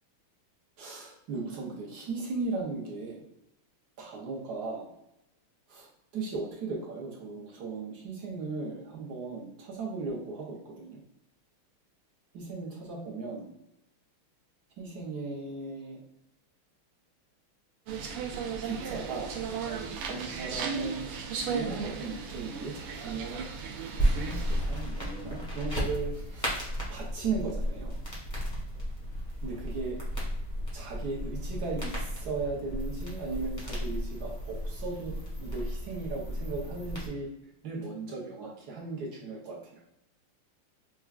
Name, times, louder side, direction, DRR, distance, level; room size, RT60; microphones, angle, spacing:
voice 1, 0.8-3.2 4.0-4.9 5.7-5.9 6.1-11.0 12.3-13.5 14.8-16.0 18.6-19.4 20.0-23.5 24.0-27.9 29.4-30.0 30.7-35.1 35.4-37.3 37.6-39.6, right 4 dB, 65° right, -3 dB, 1.0 m, -37 dB
sound 1, 17.9-24.6, right 6 dB, 85° right, 1.5 m, -36 dB
sound 2, 24.0-37.1, equal, 20° left, 0.6 m, -34 dB
5.7 x 2.2 x 2.3 m, 0.86 s
omnidirectional pair, 2.4 m